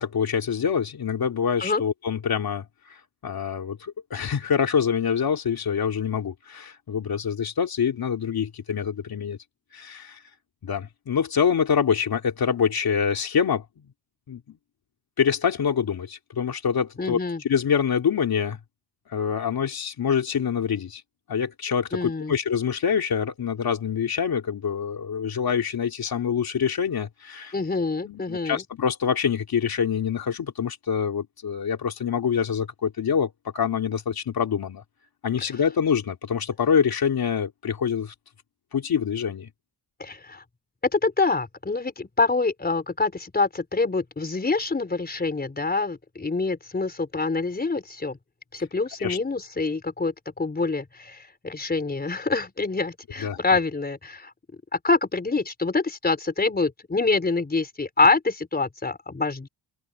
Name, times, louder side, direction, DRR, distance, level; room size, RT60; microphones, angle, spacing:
voice 1, 0.0-9.4 9.7-10.2 10.6-13.6 14.3-14.4 15.2-18.6 19.1-21.0 21.3-27.5 28.0-34.8 35.2-38.1 38.7-39.5 49.0-49.2 53.2-53.4, left 7 dB, 60° left, 2.9 m, -25 dB
voice 2, 17.0-17.4 21.9-22.4 27.5-28.6 40.0-40.4 40.9-48.2 48.5-54.3 54.8-59.5, left 3 dB, 20° left, 4.3 m, -26 dB
open air
wide cardioid pair, 140°, 41 cm